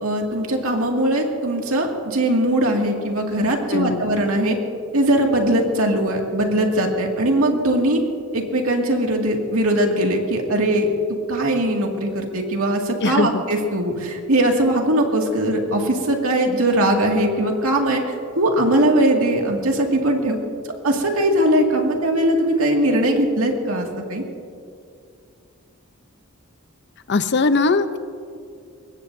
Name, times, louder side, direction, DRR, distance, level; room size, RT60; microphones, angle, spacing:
voice 1, 0.0-4.6 4.9-8.0 8.3-10.9 11.3-20.4 20.8-24.2, right 1 dB, 80° right, 1 dB, 2.2 m, -20 dB
voice 2, 3.7-4.1 13.0-13.4 27.1-28.0, left 3 dB, 55° left, 11 dB, 0.7 m, -20 dB
24.0 x 20.5 x 2.7 m, 2.4 s
head